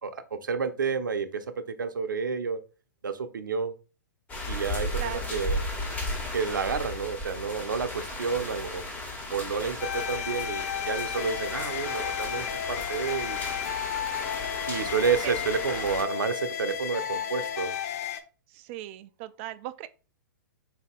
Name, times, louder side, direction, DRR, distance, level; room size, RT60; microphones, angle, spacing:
voice 1, 0.0-2.6 3.0-3.7 4.5-5.6 6.3-8.8 9.3-13.4 14.7-17.8, right 5 dB, 75° right, 0.6 m, -30 dB
sound 1, 4.3-16.0, left 1 dB, 15° left, 1.3 m, -35 dB
voice 2, 5.0-5.4 15.2-15.3 18.5-19.9, right 13 dB, 40° right, 0.3 m, -38 dB
sound 2, 9.8-18.2, left 10 dB, 50° left, 0.6 m, -33 dB
3.9 x 2.8 x 3.7 m
figure-of-eight pair, 115°, 11 cm